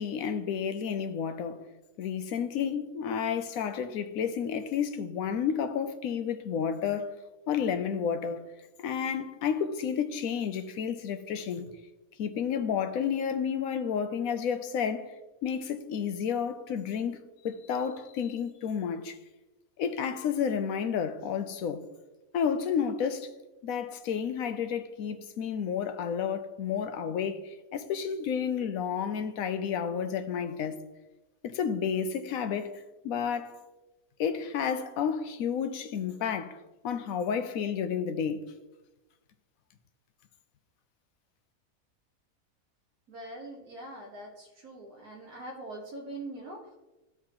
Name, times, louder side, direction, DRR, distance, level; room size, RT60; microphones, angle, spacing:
voice 1, 0.0-1.6 2.0-7.2 7.5-8.4 8.8-11.7 12.2-15.1 15.4-17.2 17.4-19.1 19.8-21.9 22.3-23.3 23.6-30.8 31.4-33.6 34.2-36.6 36.8-38.5, left 7 dB, 75° left, 1.0 m, -31 dB
voice 2, 43.1-46.8, right 1 dB, 75° right, 1.5 m, -43 dB
13.0 x 4.7 x 2.9 m
omnidirectional pair, 1.6 m